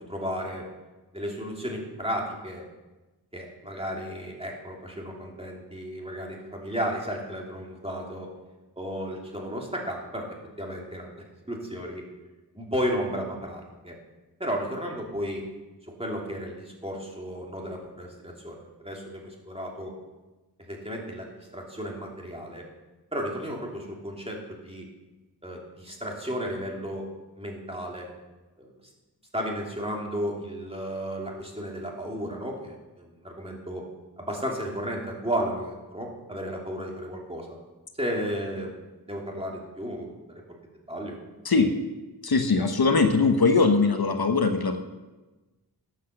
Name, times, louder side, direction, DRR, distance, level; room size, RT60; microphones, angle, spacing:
voice 1, 0.1-0.6 1.1-2.6 3.3-8.3 8.8-12.0 12.5-13.9 14.4-15.4 16.0-19.9 20.7-22.6 23.1-24.8 25.4-27.1 27.4-28.1 28.6-28.7 29.3-33.8 34.2-37.5 38.0-40.1 40.9-41.2, equal, 15° right, -2 dB, 2.9 m, -33 dB
voice 2, 42.2-44.8, left 4 dB, 70° left, 6 dB, 1.2 m, -21 dB
12.0 x 8.1 x 6.6 m, 1.1 s
wide cardioid pair, 70°, 39 cm